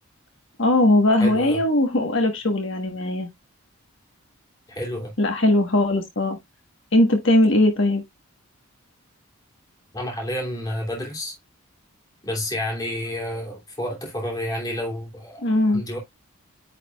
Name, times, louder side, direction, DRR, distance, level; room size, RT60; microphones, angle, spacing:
voice 1, 0.6-3.3 5.2-6.4 6.9-8.0 15.4-15.8, left 1 dB, 60° left, 1.3 m, -19 dB
voice 2, 1.2-1.6 4.7-5.1 9.9-11.4 12.2-15.4 15.7-16.0, left 1 dB, 15° left, 2.8 m, -30 dB
9.3 x 4.8 x 2.4 m
head